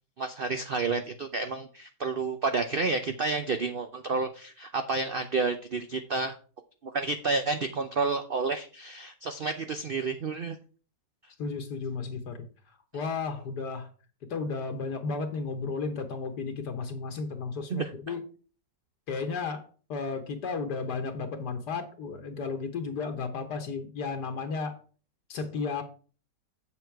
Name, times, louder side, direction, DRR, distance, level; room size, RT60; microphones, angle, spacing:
voice 1, 0.2-6.4 6.8-10.6 17.7-17.9, right 4 dB, 75° right, 8 dB, 0.5 m, -30 dB
voice 2, 11.4-13.9 14.3-18.2 19.1-19.6 19.9-24.8 25.3-25.8, left 4 dB, 70° left, 6 dB, 1.6 m, -33 dB
8.0 x 7.1 x 4.6 m, 0.38 s
omnidirectional pair, 1.8 m